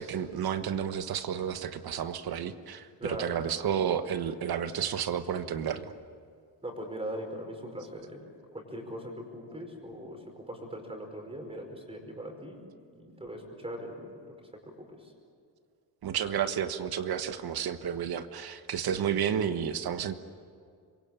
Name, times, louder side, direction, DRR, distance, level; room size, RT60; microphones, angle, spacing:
voice 1, 0.0-5.9 16.0-20.1, right 8 dB, 60° right, 10 dB, 1.4 m, -31 dB
voice 2, 3.0-3.5 6.6-8.2 8.5-12.6 12.9-14.3 14.9-15.1, equal, 15° right, 3 dB, 5.2 m, -40 dB
27.0 x 23.0 x 8.9 m, 2.3 s
cardioid pair, 150°, 42 cm